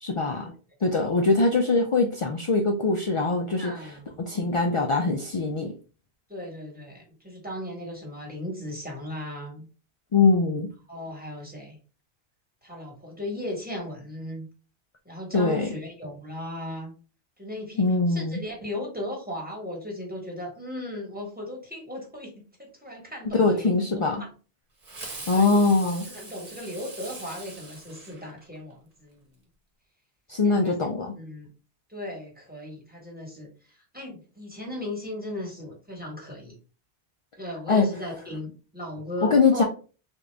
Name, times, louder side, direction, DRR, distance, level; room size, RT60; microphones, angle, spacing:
voice 1, 0.0-0.5 0.8-3.7 4.3-5.7 10.1-10.7 15.3-15.7 17.8-18.4 23.3-24.2 25.3-26.1 30.3-31.1 37.7-37.9 39.3-39.6, left 3 dB, 55° left, 2 dB, 0.3 m, -22 dB
voice 2, 3.6-4.2 6.3-9.7 10.9-11.8 12.6-14.5 15.0-16.9 17.4-22.3 22.6-23.8 24.1-24.3 25.3-25.8 26.0-29.2 30.4-30.9 31.2-31.5 31.9-36.6 37.4-39.6, left 1 dB, 10° right, -1 dB, 1.1 m, -37 dB
Fireworks, 24.8-28.7, right 2 dB, 40° right, 1.0 m, -42 dB
3.5 x 2.5 x 3.2 m, 0.36 s
omnidirectional pair, 1.1 m